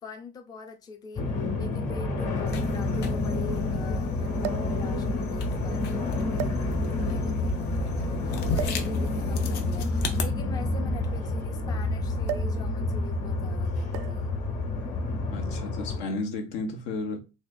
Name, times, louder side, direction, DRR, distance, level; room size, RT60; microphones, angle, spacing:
voice 1, 0.0-14.4, left 4 dB, 20° left, 0.5 m, -43 dB
sound 1, 0.7-0.8 1.9-2.0 2.2-2.3 4.4-4.8 5.6-5.8 6.3-7.0 8.5-8.9 10.0-11.6 12.2-12.6 12.9-13.2 13.9-14.3 15.3-15.5, right 13 dB, 75° right, 0.4 m, -36 dB
sound 2, 1.2-16.0, left 2 dB, 40° left, 1.4 m, -29 dB
sound 3, 2.5-10.2, left 4 dB, 60° left, 0.9 m, -37 dB
voice 2, 15.3-17.2, left 3 dB, 80° left, 1.2 m, -33 dB
4.1 x 3.3 x 2.3 m
cardioid pair, 170°, 19 cm